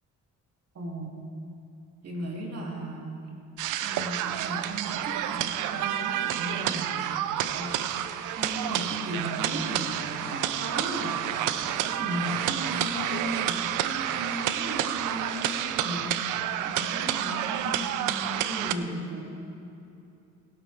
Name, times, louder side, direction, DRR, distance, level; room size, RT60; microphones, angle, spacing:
voice 1, 0.7-1.1 2.0-3.2 3.8-7.9 8.4-11.3 11.6-16.2 16.6-19.3, right 1 dB, 55° right, -2 dB, 2.7 m, -36 dB
sound 1, 3.6-18.7, right 11 dB, 85° right, 0.6 m, -29 dB
16.5 x 12.0 x 3.4 m, 2.7 s
cardioid pair, 90°, 30 cm